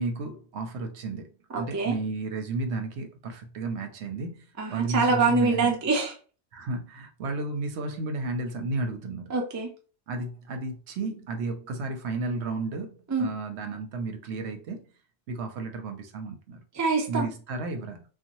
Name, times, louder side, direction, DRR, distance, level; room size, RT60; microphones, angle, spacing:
voice 1, 0.0-4.4 4.7-5.7 6.5-9.3 10.1-14.9 15.3-16.6 17.1-18.0, right 3 dB, 75° right, 0.8 m, -33 dB
voice 2, 1.5-2.0 4.6-6.1 9.3-9.7 13.1-13.3 16.7-17.3, right 4 dB, 25° right, 0.3 m, -25 dB
2.6 x 2.2 x 2.9 m
omnidirectional pair, 1.2 m